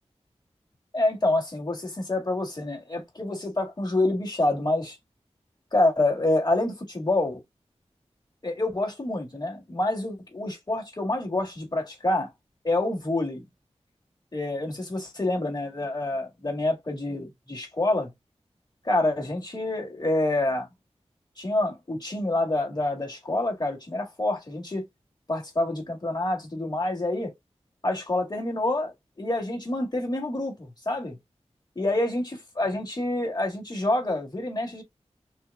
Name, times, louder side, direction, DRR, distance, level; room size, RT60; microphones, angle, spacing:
voice 1, 0.9-5.0 5.7-7.4 8.4-12.3 12.6-13.4 14.3-18.1 18.8-20.7 21.4-24.9 25.3-27.3 27.8-31.2 31.8-34.8, left 2 dB, 35° left, 2.0 m, -27 dB
6.2 x 2.3 x 2.3 m
wide cardioid pair, 55°, 12 cm